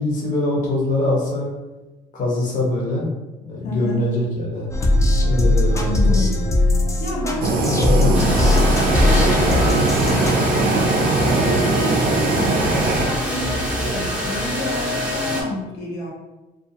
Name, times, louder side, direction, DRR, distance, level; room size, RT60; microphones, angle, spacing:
voice 1, 0.0-1.5 2.1-3.1 3.5-4.7 5.2-6.3 7.6-8.2, left 2 dB, 50° left, -3 dB, 0.9 m, -23 dB
voice 2, 3.6-4.0 5.7-6.4 7.0-10.3 10.6-10.9 11.2-16.1, left 2 dB, 80° left, -5 dB, 0.8 m, -29 dB
sound 1, 4.7-10.4, left 1 dB, 20° left, 0.4 m, -19 dB
Fire, 7.4-13.0, right 3 dB, 60° right, 0.5 m, -21 dB
sound 2, 8.1-15.4, equal, 5° right, 0.7 m, -24 dB
2.5 x 2.3 x 2.7 m, 1.1 s
cardioid pair, 110°, 17 cm